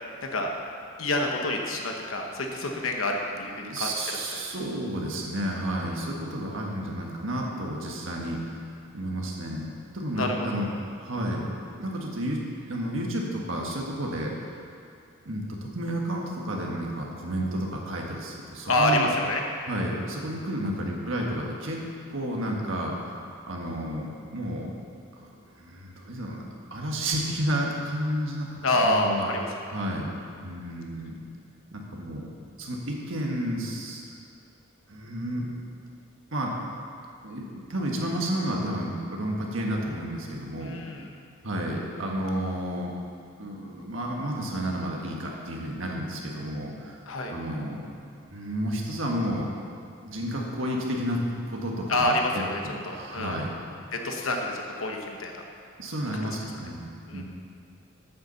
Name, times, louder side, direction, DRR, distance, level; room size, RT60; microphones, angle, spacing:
voice 1, 1.0-3.9 5.9-6.2 10.2-10.6 18.7-19.4 28.6-29.5 40.6-41.1 47.1-47.3 51.9-53.4 53.9-55.4 57.1-57.2, left 1 dB, 70° left, 2 dB, 1.1 m, -27 dB
voice 2, 3.6-8.4 8.9-10.7 11.0-11.5 11.8-12.4 12.6-14.5 15.2-19.1 19.7-21.8 22.1-24.7 25.2-25.3 25.6-26.4 26.7-29.3 29.7-31.1 31.7-32.2 32.6-34.0 34.9-35.5 36.3-36.5 37.2-40.8 41.4-42.9 43.4-47.0 47.3-47.8 48.3-49.5 50.0-51.2 51.5-53.5 55.8-57.2, equal, 65° right, -1 dB, 1.6 m, -31 dB
8.7 x 6.8 x 7.0 m, 2.4 s
head